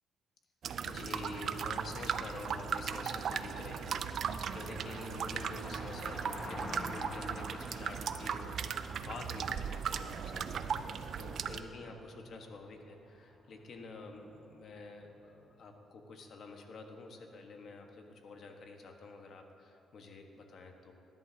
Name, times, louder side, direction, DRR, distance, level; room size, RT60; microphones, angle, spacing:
sound 1, 0.6-11.6, right 7 dB, 65° right, 0.5 m, -37 dB
voice 1, 0.8-20.9, left 3 dB, 60° left, 3 dB, 1.4 m, -48 dB
Car passing by, 2.7-15.0, left 1 dB, 25° left, 1.5 m, -50 dB
19.5 x 11.0 x 2.9 m, 2.8 s
cardioid pair, 90°, 0 cm